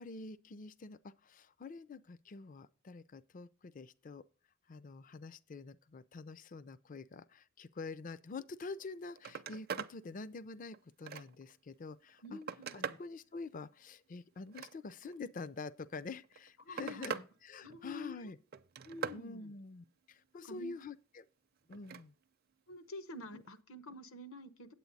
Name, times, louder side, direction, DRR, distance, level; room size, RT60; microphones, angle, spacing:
voice 1, 0.0-4.2 4.7-12.4 12.7-18.4 19.1-21.3 21.7-22.1 23.3-23.4, left 4 dB, 40° left, 0.4 m, -47 dB
Telephone, 8.7-8.9 9.2-10.0 10.4-11.5 12.1-13.1 14.4-15.2 16.2-17.3 17.6-18.1 18.5-19.2 21.7-22.1 23.5-23.6, right 6 dB, 45° right, 0.5 m, -43 dB
voice 2, 12.2-13.0 16.6-17.2 17.6-18.3 18.8-19.5 20.3-20.8 22.7-24.7, equal, 75° left, 1.1 m, -48 dB
8.8 x 8.3 x 4.0 m
head